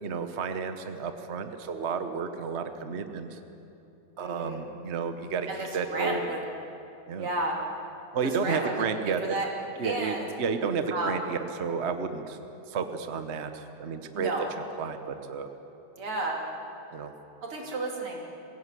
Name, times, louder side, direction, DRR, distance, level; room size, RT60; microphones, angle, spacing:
voice 1, 0.0-3.4 4.2-5.5 5.7-6.3 7.1-7.3 8.1-9.4 9.8-12.4 12.7-14.3 14.8-15.5 16.9-17.1, right 5 dB, 45° right, 8 dB, 0.9 m, -31 dB
voice 2, 4.2-4.6 5.5-6.4 7.2-7.6 8.4-9.5 9.8-10.3 10.9-11.2 14.1-14.5 16.0-16.4 17.4-18.2, right 2 dB, 75° right, 0 dB, 3.6 m, -32 dB
22.0 x 16.5 x 8.3 m, 2.9 s
omnidirectional pair, 2.4 m